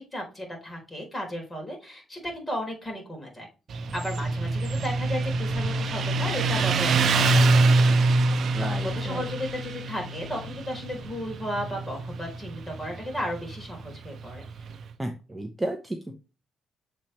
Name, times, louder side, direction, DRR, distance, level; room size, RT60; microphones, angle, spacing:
voice 1, 0.0-3.5 3.9-8.3 8.6-14.5, equal, 15° left, 1 dB, 4.0 m, -35 dB
Motorcycle, 3.7-14.8, right 3 dB, 60° right, 0.8 m, -25 dB
voice 2, 8.5-9.2 15.0-16.1, right 1 dB, 15° right, 5 dB, 0.9 m, -33 dB
7.3 x 4.4 x 3.2 m, 0.32 s
cardioid pair, 90°, 0 cm